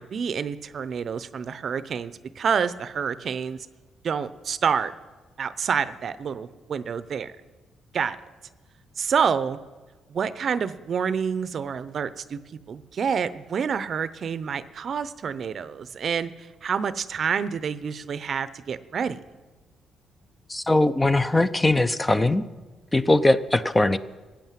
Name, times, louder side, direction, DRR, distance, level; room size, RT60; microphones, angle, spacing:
voice 1, 0.0-3.6 4.0-4.9 5.4-7.3 7.9-8.2 9.0-9.6 10.1-12.4 12.7-19.2, right 6 dB, 55° right, 14 dB, 0.7 m, -28 dB
voice 2, 20.5-22.4 22.9-24.0, left 2 dB, 15° left, 12 dB, 0.6 m, -20 dB
15.0 x 8.9 x 7.5 m, 1.3 s
cardioid pair, 90°, 0 cm